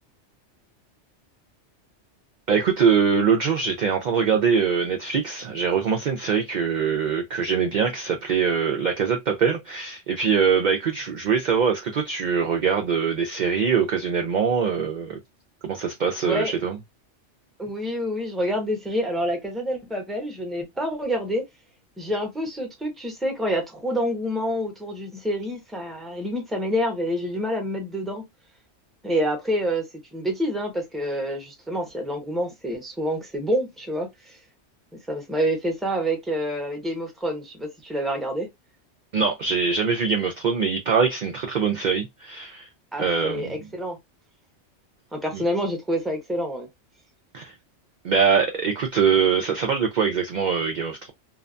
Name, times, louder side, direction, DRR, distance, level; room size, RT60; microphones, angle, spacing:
voice 1, 2.5-15.2 15.6-16.8 39.1-42.7 43.0-43.7 45.3-45.4 47.3-47.6 48.0-51.1, right 6 dB, 60° right, 0.5 m, -23 dB
voice 2, 17.6-21.4 22.0-28.2 29.0-29.8 30.1-34.4 35.1-38.5 42.9-44.0 45.1-46.7, equal, ahead, 0.7 m, -27 dB
2.8 x 2.2 x 2.4 m
omnidirectional pair, 1.2 m